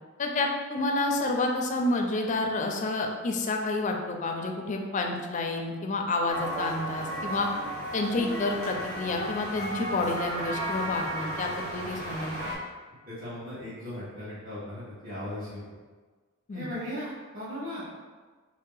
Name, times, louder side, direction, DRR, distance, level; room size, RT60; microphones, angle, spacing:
voice 1, 0.2-7.5 7.9-12.4 16.5-16.7, left 2 dB, 35° left, 2 dB, 0.4 m, -29 dB
sound 1, 6.3-12.6, right 1 dB, 85° right, 1.1 m, -34 dB
voice 2, 13.1-15.6 16.5-17.8, left 1 dB, 45° right, -12 dB, 1.2 m, -37 dB
3.1 x 2.7 x 3.8 m, 1.4 s
head